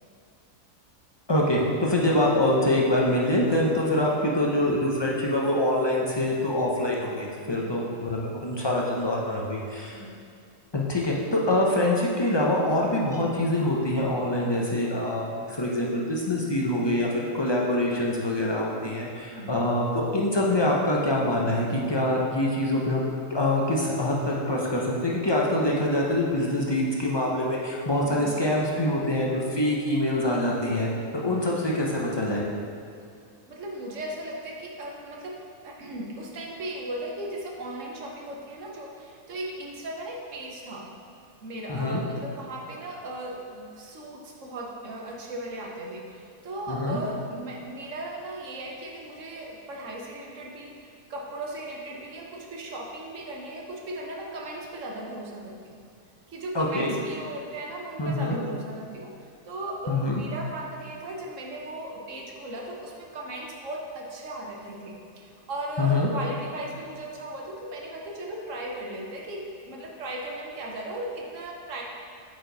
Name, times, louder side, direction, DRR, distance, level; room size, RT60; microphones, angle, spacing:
voice 1, 1.3-10.0 10.7-32.5 41.7-42.0 46.7-47.0 56.5-56.9 58.0-58.4 59.9-60.2 65.8-66.1, left 1 dB, 40° left, -3 dB, 0.3 m, -25 dB
voice 2, 28.0-28.4 31.1-31.5 33.5-35.4 35.6-40.9 41.4-55.8 56.3-71.8, right 1 dB, 60° right, -1 dB, 1.2 m, -37 dB
8.0 x 5.0 x 4.0 m, 2.3 s
omnidirectional pair, 1.6 m